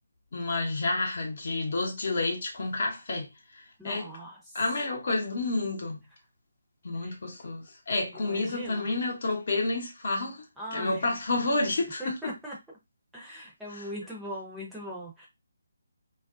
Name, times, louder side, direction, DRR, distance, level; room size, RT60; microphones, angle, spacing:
voice 1, 0.3-3.3 3.8-4.1 4.5-6.0 6.8-10.5 10.7-12.4 13.7-13.9, left 2 dB, 50° left, 0.8 m, -30 dB
voice 2, 3.8-4.4 8.3-8.8 10.6-11.0 12.0-12.5 13.1-15.3, equal, 5° right, 0.7 m, -39 dB
2.4 x 2.1 x 2.4 m
figure-of-eight pair, 150°, 0 cm